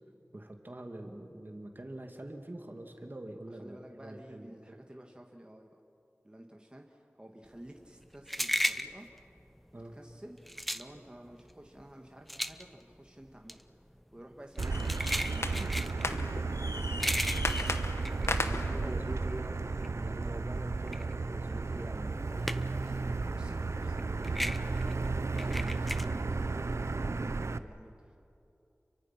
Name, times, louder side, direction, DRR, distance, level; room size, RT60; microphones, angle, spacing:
voice 1, 0.3-4.8 9.7-10.0 18.3-19.5 19.8-22.2, right 1 dB, 45° right, 3 dB, 2.3 m, -44 dB
voice 2, 3.5-5.7 6.2-9.1 9.7-10.4 10.7-13.6 14.1-17.8 18.3-19.6 22.1-28.2, right 1 dB, 20° right, 1 dB, 1.7 m, -51 dB
sound 1, 7.5-19.1 19.5-22.9 23.2-26.0, equal, ahead, 0.8 m, -36 dB
Motor vehicle (road), 14.6-27.6, right 3 dB, 80° right, 0.6 m, -33 dB
sound 2, 14.7-20.2, left 2 dB, 70° left, 1.0 m, -38 dB
30.0 x 23.5 x 5.9 m, 2.8 s
wide cardioid pair, 45°, 5 cm